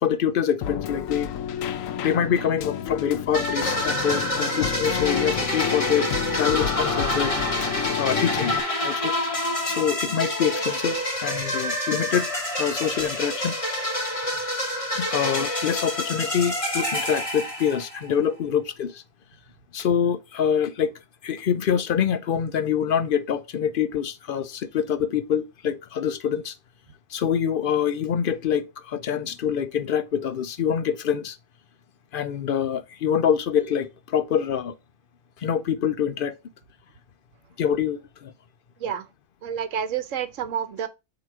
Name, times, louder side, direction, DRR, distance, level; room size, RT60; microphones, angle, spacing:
voice 1, 0.0-1.3 2.0-7.4 8.0-8.5 8.8-9.1 9.6-12.3 12.6-13.5 15.0-19.0 19.7-20.9 21.2-26.5 27.1-31.4 32.1-34.8 35.4-36.3 37.6-38.3, left 8 dB, 60° left, 0.6 m, -25 dB
Keyboard (musical), 0.6-8.6, left 9 dB, 90° left, 1.0 m, -30 dB
sound 1, 3.3-18.1, left 1 dB, 25° left, 1.2 m, -27 dB
voice 2, 39.4-40.9, right 8 dB, 70° right, 1.1 m, -29 dB
7.6 x 3.0 x 4.7 m
omnidirectional pair, 1.4 m